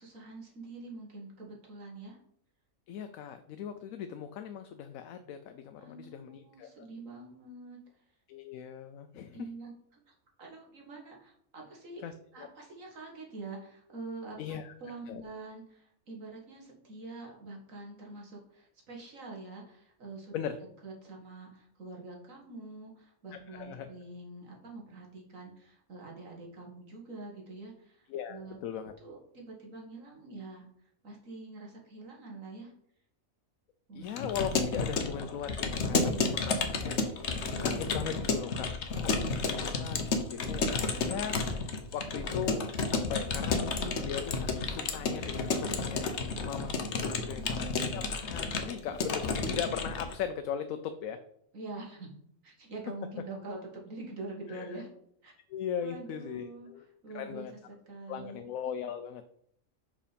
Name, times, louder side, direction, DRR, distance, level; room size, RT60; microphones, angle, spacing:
voice 1, 0.0-2.2 5.8-7.8 9.3-10.1 10.4-12.0 12.3-20.3 20.8-28.6 29.0-30.7 31.0-32.7 33.9-34.1 35.9-36.9 47.2-47.6 51.5-52.1 52.4-54.9 55.2-55.3 55.8-56.7 57.0-57.5 57.9-58.4, right 2 dB, 75° right, -1 dB, 2.2 m, -45 dB
voice 2, 2.9-6.9 8.3-9.4 12.0-12.5 14.4-14.7 15.1-15.2 20.3-20.6 23.5-23.9 28.1-28.9 33.9-36.5 36.8-37.0 37.6-38.7 39.0-39.2 39.5-51.2 54.5-54.7 55.5-56.8 57.1-57.5 58.1-59.2, left 8 dB, 85° left, 8 dB, 1.0 m, -39 dB
Keyboard (musical) / Computer keyboard, 34.1-50.2, left 4 dB, 60° left, 1.2 m, -31 dB
5.7 x 5.0 x 5.1 m, 0.67 s
omnidirectional pair, 1.4 m